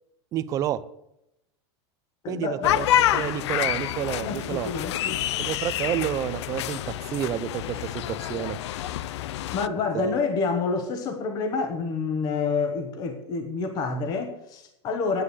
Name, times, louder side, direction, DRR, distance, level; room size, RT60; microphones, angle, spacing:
voice 1, 0.3-0.8 2.3-2.9 3.1-4.7 5.4-8.6 9.9-10.1, right 11 dB, 25° right, 0.6 m, -29 dB
voice 2, 2.2-2.8 4.2-5.2 9.5-15.2, left 4 dB, 25° left, 1.2 m, -28 dB
sound 1, 2.6-9.7, left 12 dB, 70° left, 0.5 m, -27 dB
10.0 x 8.0 x 8.2 m
supercardioid pair, 165°, 15 cm